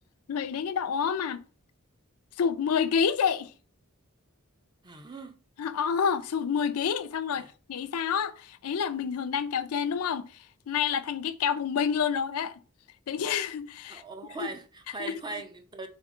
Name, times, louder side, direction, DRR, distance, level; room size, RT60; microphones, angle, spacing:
voice 1, 0.3-1.4 2.4-3.5 5.6-12.6 13.1-14.0 14.4-14.5 15.0-15.1, left 7 dB, 85° left, 0.4 m, -28 dB
voice 2, 4.8-5.4 7.4-7.5 13.9-15.9, right 3 dB, 20° right, 0.5 m, -40 dB
3.5 x 3.5 x 3.7 m
head